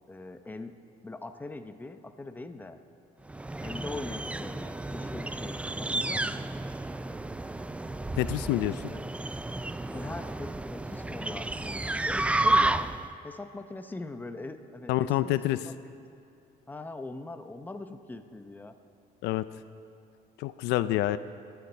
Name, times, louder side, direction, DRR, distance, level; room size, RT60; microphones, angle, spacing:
voice 1, 0.1-0.7 1.0-2.8 3.6-6.5 8.9-9.0 9.9-13.0 13.2-15.6 16.7-18.7, left 2 dB, 10° left, 8 dB, 0.7 m, -41 dB
sound 1, 3.3-13.1, right 2 dB, 5° right, 0.3 m, -31 dB
voice 2, 8.2-8.8 14.9-15.7 19.2-19.4 20.4-21.2, left 15 dB, 90° left, 14 dB, 0.4 m, -27 dB
23.0 x 9.5 x 4.4 m, 2.5 s
cardioid pair, 110°, 17 cm